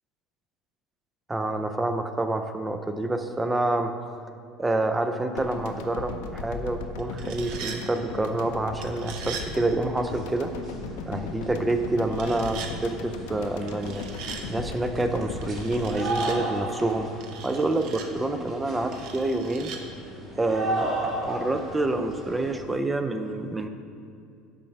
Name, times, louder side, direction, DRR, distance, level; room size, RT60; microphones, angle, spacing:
voice 1, 1.3-3.9 4.6-10.5 11.1-14.0 14.5-17.1 17.4-19.7 20.4-20.9 21.2-23.7, right 2 dB, 10° right, 7 dB, 0.4 m, -27 dB
sound 1, 5.4-17.6, left 4 dB, 80° left, 0.7 m, -37 dB
sound 2, 7.0-7.8 8.8-9.5 12.1-12.7 13.7-14.4 15.4-16.4 17.2-18.1 18.9-19.8, right 6 dB, 55° right, 0.7 m, -39 dB
sound 3, 9.9-22.6, right 1 dB, 35° right, 1.6 m, -36 dB
7.2 x 5.2 x 5.8 m, 2.5 s
cardioid pair, 150°, 0 cm